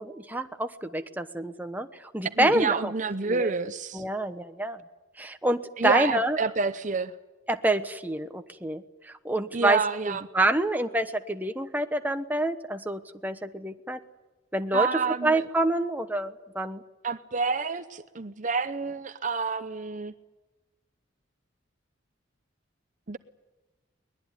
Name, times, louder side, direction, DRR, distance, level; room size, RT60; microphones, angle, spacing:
voice 1, 0.0-1.9 2.1-2.9 3.2-3.5 3.9-4.8 5.2-6.4 7.5-9.8 10.1-14.0 14.5-14.9 15.2-16.8, right 1 dB, 10° right, 7 dB, 1.1 m, -27 dB
voice 2, 2.4-4.0 5.8-7.1 9.5-10.3 14.7-15.4 17.0-20.1 23.1-23.2, right 4 dB, 40° right, 11 dB, 0.7 m, -28 dB
22.5 x 20.5 x 9.9 m, 1.2 s
head